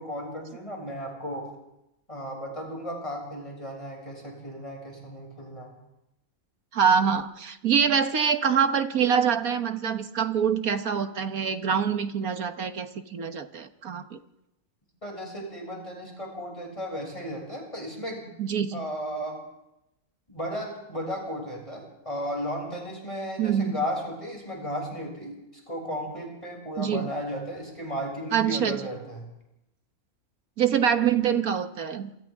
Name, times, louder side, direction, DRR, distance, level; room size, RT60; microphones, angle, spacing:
voice 1, 0.0-1.5 2.1-5.7 15.0-18.3 18.7-19.4 20.3-29.3, equal, 20° left, 0 dB, 6.9 m, -35 dB
voice 2, 6.7-14.2 18.4-18.9 23.4-23.8 26.8-27.1 28.3-28.8 30.6-32.1, right 7 dB, 75° right, 8 dB, 1.8 m, -25 dB
27.5 x 27.5 x 3.7 m, 0.86 s
omnidirectional pair, 1.5 m